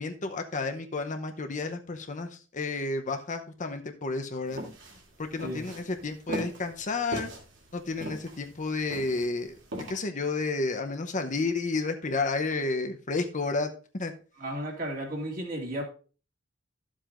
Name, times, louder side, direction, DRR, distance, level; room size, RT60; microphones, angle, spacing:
voice 1, 0.0-4.6 5.2-7.3 7.7-9.6 9.9-14.1, left 3 dB, 40° left, 6 dB, 0.8 m, -31 dB
sound 1, 4.5-9.9, right 1 dB, 65° right, 2.7 m, -38 dB
voice 2, 14.4-15.8, right 1 dB, 45° right, 0 dB, 2.3 m, -34 dB
12.0 x 7.4 x 2.5 m, 0.37 s
head